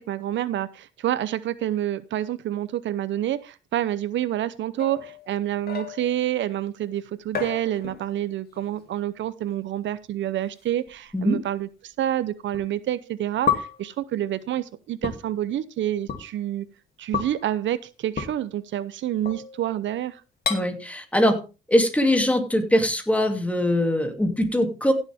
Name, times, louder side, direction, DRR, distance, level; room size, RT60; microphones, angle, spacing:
voice 1, 0.0-16.7 17.0-20.2, right 12 dB, 70° right, 16 dB, 0.7 m, -28 dB
sound 1, 4.8-6.3 7.3-8.3 8.6-8.9 9.9-10.0 10.9-11.0 12.5-12.6 13.5-13.9 15.0-15.2 16.1-16.2 17.1-17.4 18.2-18.3 19.2-19.7 20.4-20.6, left 7 dB, 50° left, 2.8 m, -30 dB
voice 2, 20.5-21.4 21.7-24.9, left 1 dB, 5° left, 5 dB, 2.7 m, -22 dB
16.0 x 7.2 x 3.6 m, 0.31 s
cardioid pair, 90°, 20 cm